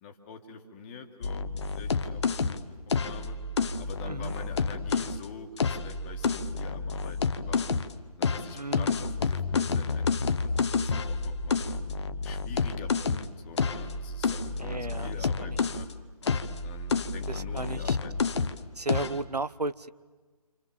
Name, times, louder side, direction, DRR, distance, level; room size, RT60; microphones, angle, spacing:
voice 1, 0.0-2.7 3.0-3.4 3.8-7.7 8.2-11.8 12.2-15.9 16.6-18.1 18.6-18.7, left 5 dB, 20° left, 3 dB, 1.8 m, -46 dB
sound 1, 1.2-5.2 5.6-7.9 8.2-15.9 16.2-18.6 18.9-19.2, left 4 dB, 45° left, 1.0 m, -29 dB
voice 2, 8.5-8.9 14.6-15.1 15.4-15.6 17.3-18.0 18.8-19.9, right 3 dB, 90° right, 16 dB, 0.9 m, -34 dB
28.5 x 27.0 x 7.3 m, 1.3 s
figure-of-eight pair, 150°, 20 cm